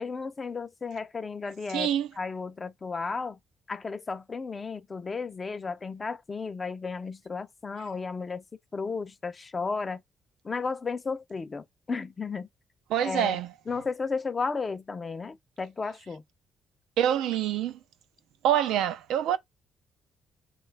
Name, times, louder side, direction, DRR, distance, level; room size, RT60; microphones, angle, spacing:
voice 1, 0.0-1.9 2.2-3.4 3.7-8.4 8.7-10.0 10.4-12.5 13.0-13.4 13.7-16.2, left 4 dB, 30° left, 0.4 m, -33 dB
voice 2, 1.7-2.1 12.9-13.5 17.0-17.8 18.4-19.4, right 10 dB, 90° right, 0.4 m, -26 dB
3.2 x 2.3 x 3.2 m
cardioid pair, 90°, 0 cm